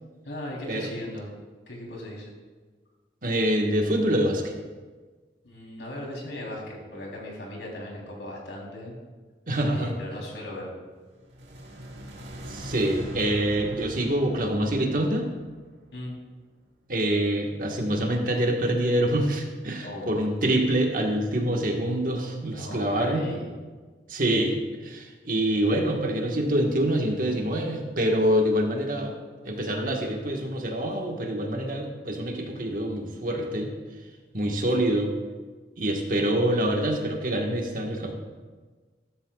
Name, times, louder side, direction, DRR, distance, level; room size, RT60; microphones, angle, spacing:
voice 1, 0.3-1.3 1.7-2.3 5.4-9.0 9.7-10.7 15.9-16.2 19.8-20.1 22.5-23.5, left 1 dB, 85° left, -2 dB, 3.6 m, -38 dB
voice 2, 3.2-4.5 9.5-9.9 12.5-15.3 16.9-23.2 24.1-29.1 29.4-33.7 34.3-35.1 35.8-38.1, right 1 dB, 50° right, 1 dB, 1.5 m, -25 dB
sound 1, 11.1-16.3, equal, 80° right, 1.8 m, -42 dB
15.5 x 12.5 x 2.4 m, 1.4 s
head